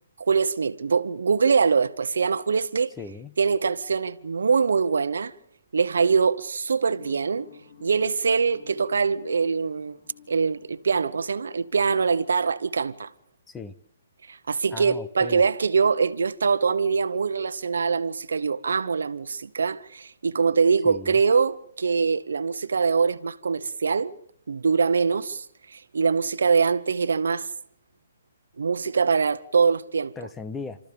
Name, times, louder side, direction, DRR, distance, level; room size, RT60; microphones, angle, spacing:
voice 1, 0.3-2.9 3.4-5.3 5.7-7.5 7.8-10.0 10.3-13.1 14.3-24.1 24.5-27.5 28.6-30.1, right 5 dB, 90° right, 1.0 m, -23 dB
voice 2, 3.0-3.4 13.5-13.7 14.7-15.4 20.8-21.2 30.2-30.8, left 4 dB, 10° left, 0.7 m, -37 dB
sound 1, 6.9-13.1, left 6 dB, 45° left, 3.9 m, -53 dB
28.5 x 14.0 x 7.0 m
hypercardioid pair, 165°, 0 cm